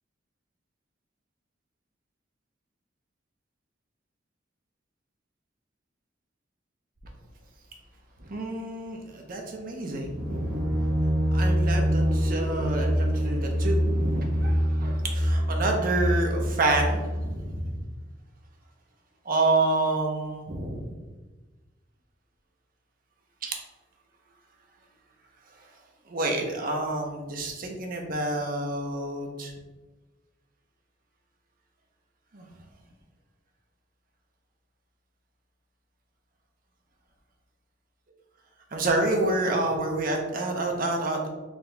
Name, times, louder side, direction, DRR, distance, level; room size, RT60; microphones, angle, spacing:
voice 1, 8.2-10.7 11.3-17.7 19.2-21.0 23.4-23.5 26.1-29.5 32.3-32.5 38.7-41.3, right 2 dB, 50° right, 2 dB, 0.7 m, -28 dB
sound 1, 10.0-17.7, equal, 10° right, 1.5 m, -25 dB
4.0 x 2.9 x 3.4 m, 1.2 s
head